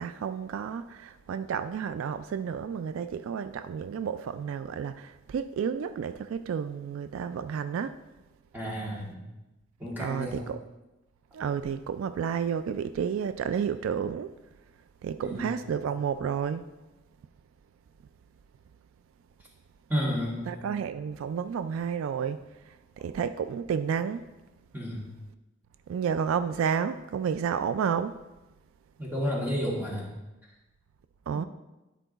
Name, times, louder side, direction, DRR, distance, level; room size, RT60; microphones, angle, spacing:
voice 1, 0.0-8.0 10.0-10.6 11.3-14.3 15.0-16.6 20.1-20.2 20.5-24.3 25.9-28.1 31.3-31.4, right 7 dB, 75° right, 0.3 m, -31 dB
voice 2, 8.5-9.2 9.8-10.5 15.2-15.4 19.9-20.4 24.7-25.1 29.0-30.1, equal, 10° right, 1.8 m, -31 dB
10.0 x 4.5 x 4.0 m
head